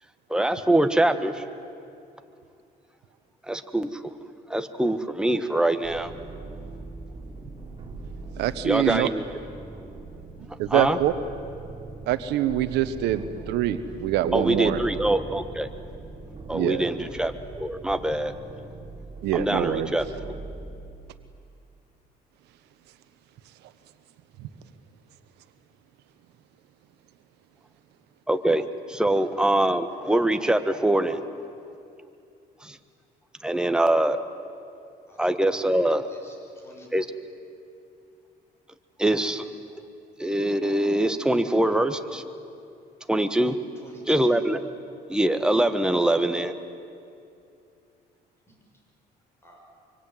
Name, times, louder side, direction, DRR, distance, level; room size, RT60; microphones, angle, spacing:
voice 1, 0.3-1.4 3.5-4.1 4.5-6.1 8.6-9.2 10.7-11.0 14.3-15.7 16.5-18.3 19.3-20.1 28.3-31.2 32.6-32.8 33.4-34.2 35.2-36.1 36.9-37.1 39.0-39.5 40.2-42.2 43.1-43.6 44.1-44.6 45.1-46.5, right 1 dB, 5° right, 8 dB, 1.4 m, -23 dB
sound 1, 5.8-20.7, right 3 dB, 30° right, 4.2 m, -41 dB
voice 2, 8.4-9.1 10.6-11.1 12.1-14.8 16.5-16.9 19.2-19.9, right 12 dB, 85° right, 11 dB, 1.3 m, -25 dB
voice 3, 36.1-36.9 43.8-44.4 48.5-48.8 49.4-49.6, equal, 15° left, 0 dB, 6.8 m, -51 dB
24.5 x 24.5 x 9.3 m, 2.6 s
cardioid pair, 110°, 17 cm